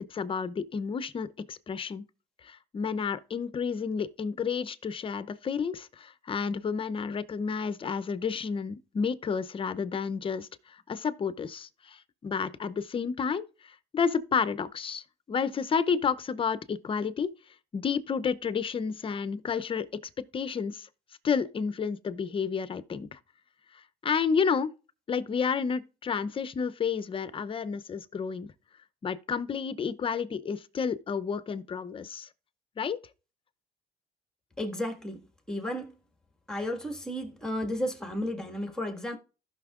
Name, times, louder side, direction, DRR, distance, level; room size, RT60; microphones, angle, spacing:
voice 1, 0.1-2.0 2.4-17.3 17.7-19.9 20.3-20.9 21.2-23.2 24.0-24.7 25.1-28.5 29.0-32.3 32.8-33.0, left 6 dB, 30° left, 0.6 m, -31 dB
voice 2, 34.6-35.2 35.5-36.0 36.5-39.2, left 1 dB, 5° left, 1.7 m, -33 dB
15.0 x 5.9 x 2.4 m
cardioid pair, 110°, 17 cm